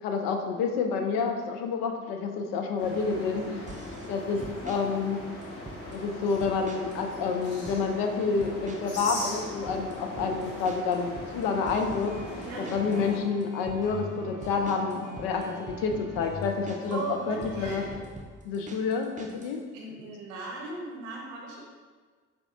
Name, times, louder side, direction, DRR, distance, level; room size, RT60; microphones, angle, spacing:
voice 1, 0.0-3.4 4.1-5.2 5.9-12.1 12.6-17.8 18.4-19.6, left 5 dB, 75° left, 4 dB, 0.5 m, -29 dB
sound 1, 2.8-13.2, left 1 dB, 45° left, 1.1 m, -40 dB
sound 2, 3.7-4.1 4.4-4.8 5.4-6.0 6.4-7.0 7.3-7.8 8.4-9.0 9.3-13.0 13.4-13.8 14.4-17.0 17.4-19.6, right 3 dB, 20° right, 0.5 m, -44 dB
voice 2, 4.2-4.6 12.4-12.7 16.9-17.9 19.2-19.4 19.7-21.6, right 3 dB, 85° right, -2 dB, 0.7 m, -38 dB
sound 3, 12.0-18.0, left 1 dB, 10° left, 1.3 m, -42 dB
4.5 x 2.3 x 2.6 m, 1.5 s
hypercardioid pair, 45°, 34 cm